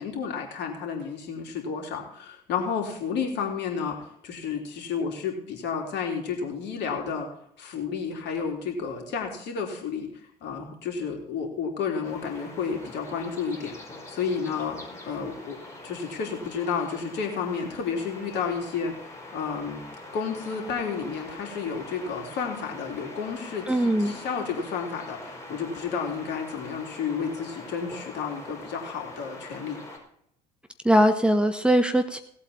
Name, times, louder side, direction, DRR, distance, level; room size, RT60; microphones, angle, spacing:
voice 1, 0.0-4.0 4.2-7.3 7.6-10.1 10.4-13.8 14.1-15.6 15.8-18.9 19.3-19.8 20.1-29.8, left 6 dB, 55° left, 2 dB, 3.6 m, -31 dB
sound 1, 12.0-30.0, left 2 dB, 15° left, 5.1 m, -43 dB
voice 2, 23.7-24.2 30.8-32.2, equal, 5° right, 8 dB, 1.2 m, -21 dB
18.0 x 8.3 x 4.4 m, 0.69 s
figure-of-eight pair, 60°, 21 cm